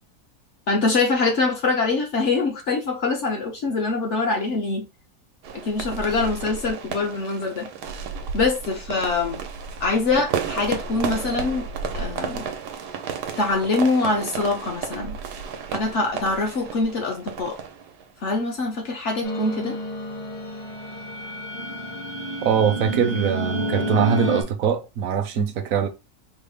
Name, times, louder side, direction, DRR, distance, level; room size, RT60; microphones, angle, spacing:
voice 1, 0.7-4.9 5.5-7.7 8.3-9.4 9.8-11.7 11.9-12.5 13.4-15.2 15.7-17.6 18.2-19.8, left 3 dB, 55° left, 0.9 m, -24 dB
sound 1, 5.4-18.3, right 6 dB, 85° right, 1.2 m, -32 dB
sound 2, 19.2-24.4, equal, 35° left, 0.5 m, -29 dB
voice 2, 22.4-25.9, right 7 dB, 65° right, 0.9 m, -22 dB
4.0 x 2.0 x 3.5 m
omnidirectional pair, 1.7 m